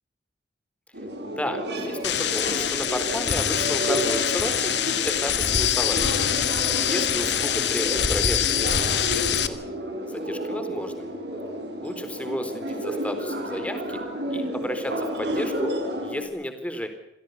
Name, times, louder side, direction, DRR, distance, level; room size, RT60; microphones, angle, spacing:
sound 1, 0.9-16.2, equal, 70° right, 6.3 m, -31 dB
voice 1, 1.4-6.2 6.8-9.6 10.1-11.1 11.8-14.0 14.3-15.7 16.0-16.9, equal, 10° left, 8 dB, 4.0 m, -33 dB
sound 2, 2.0-9.5, left 9 dB, 75° left, 1.8 m, -24 dB
28.0 x 17.0 x 8.2 m, 0.86 s
head